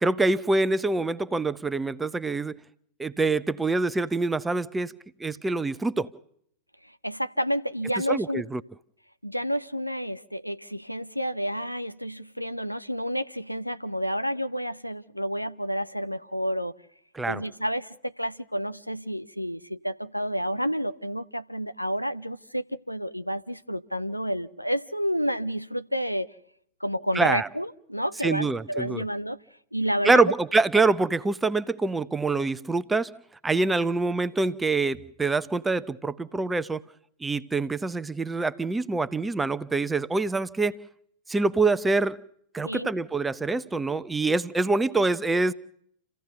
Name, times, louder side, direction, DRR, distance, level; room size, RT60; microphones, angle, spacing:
voice 1, 0.0-2.6 3.0-4.9 5.2-6.1 8.1-8.6 17.1-17.4 27.1-27.5 28.2-29.0 30.0-33.1 33.4-36.8 37.2-40.8 41.3-42.2 42.5-45.5, right 3 dB, 10° right, 0.8 m, -25 dB
voice 2, 7.0-8.4 9.2-16.7 17.3-26.3 26.8-29.4 29.7-30.2 42.6-42.9, equal, 90° left, 0.8 m, -30 dB
29.0 x 15.5 x 6.8 m
figure-of-eight pair, 90°, 0 cm